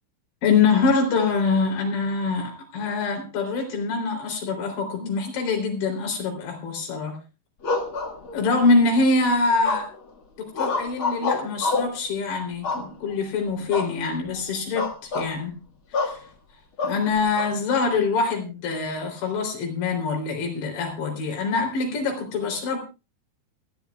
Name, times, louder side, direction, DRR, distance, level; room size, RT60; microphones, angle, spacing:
voice 1, 0.4-7.2 8.3-9.9 10.4-15.6 15.9-16.2 16.8-22.8, left 4 dB, 90° left, 2 dB, 5.7 m, -24 dB
sound 1, 7.6-8.7 9.6-10.1 10.5-12.0 12.6-13.2 13.7-14.0 14.3-14.4 14.8-15.3 15.9-16.2 16.8-17.5, left 4 dB, 45° left, 1.9 m, -27 dB
28.0 x 10.5 x 2.4 m, 0.30 s
omnidirectional pair, 4.9 m